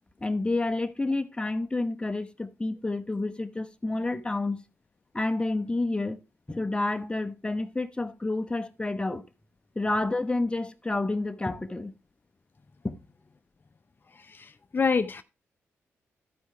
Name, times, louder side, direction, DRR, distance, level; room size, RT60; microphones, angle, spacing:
voice 1, 0.2-4.6 5.1-6.2 6.5-9.2 9.7-11.9 12.8-13.0, left 2 dB, 15° left, 1.0 m, -29 dB
voice 2, 14.3-15.2, left 5 dB, 35° left, 0.6 m, -27 dB
12.0 x 4.7 x 4.3 m
supercardioid pair, 50°, 6 cm